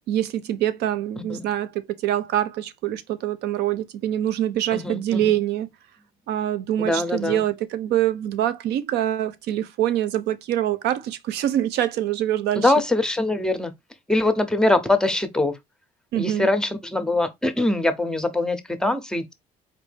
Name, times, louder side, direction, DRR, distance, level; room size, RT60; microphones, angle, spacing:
voice 1, 0.1-5.7 6.3-12.7 16.1-16.5, right 12 dB, 80° right, 0.6 m, -25 dB
voice 2, 4.7-5.2 6.8-7.4 12.6-13.7 14.1-15.6 16.2-19.3, left 2 dB, 5° left, 0.7 m, -23 dB
4.3 x 2.6 x 3.3 m
cardioid pair, 110°, 17 cm